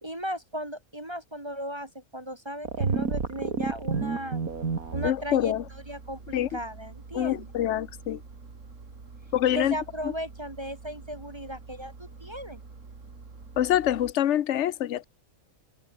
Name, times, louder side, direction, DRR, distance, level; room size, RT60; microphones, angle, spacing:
voice 1, 0.0-4.4 4.9-7.5 9.5-12.6, equal, 20° right, 1.9 m, -36 dB
sound 1, 2.6-5.1, right 5 dB, 80° right, 2.7 m, -29 dB
Engine, 4.5-14.1, right 4 dB, 60° right, 2.8 m, -46 dB
voice 2, 5.0-5.6 6.3-6.5 7.1-8.2 9.3-9.8 10.0-10.1 13.6-15.0, left 11 dB, 60° left, 1.0 m, -25 dB
open air
omnidirectional pair, 1.5 m